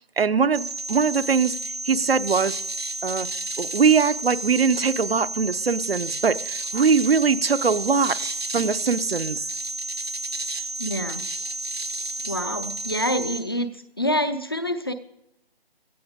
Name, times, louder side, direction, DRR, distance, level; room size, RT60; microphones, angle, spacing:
voice 1, 0.0-1.6 1.8-2.6 3.0-3.3 3.6-8.2 8.5-9.4, right 5 dB, 75° right, 0.9 m, -22 dB
sound 1, 0.6-13.4, right 2 dB, 90° right, 3.7 m, -31 dB
voice 2, 10.8-11.2 12.3-13.7 14.0-14.9, equal, 25° left, 0.6 m, -26 dB
17.5 x 13.5 x 3.7 m
figure-of-eight pair, 170°, 30 cm